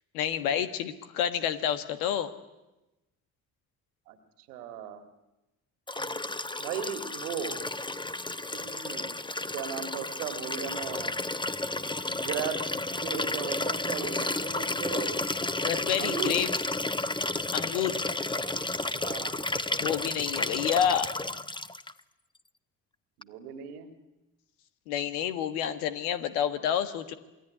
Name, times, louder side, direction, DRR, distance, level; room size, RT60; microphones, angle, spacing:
voice 1, 0.1-2.3 15.6-16.5 17.5-18.0 19.8-21.1 24.9-27.1, left 9 dB, 80° left, 11 dB, 1.6 m, -29 dB
voice 2, 4.5-5.0 6.6-7.6 8.5-9.1 9.5-11.1 12.0-12.6 12.9-15.2 16.0-16.4 18.4-18.6 19.0-19.4 23.2-24.0, right 8 dB, 80° right, 9 dB, 2.1 m, -37 dB
Liquid, 5.9-21.9 23.2-23.3, left 2 dB, 10° left, 1.1 m, -32 dB
27.5 x 21.0 x 9.8 m, 1.0 s
hypercardioid pair, 40°, 44 cm